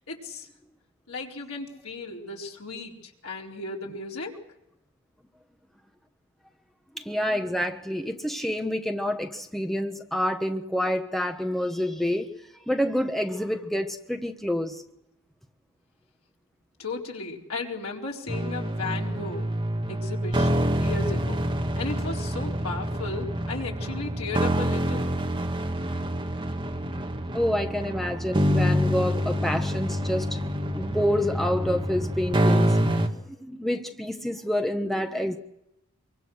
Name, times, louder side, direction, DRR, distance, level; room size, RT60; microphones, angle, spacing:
voice 1, 0.1-0.5 1.1-4.4 16.8-19.5 19.9-21.4 21.8-25.1, left 3 dB, 90° left, -1 dB, 4.4 m, -35 dB
voice 2, 6.9-12.3 12.7-14.8 27.3-30.3 30.7-32.8 33.3-35.4, equal, ahead, 5 dB, 1.2 m, -28 dB
sound 1, 18.3-33.1, equal, 20° right, 1.9 m, -27 dB
25.5 x 24.0 x 6.5 m, 0.88 s
head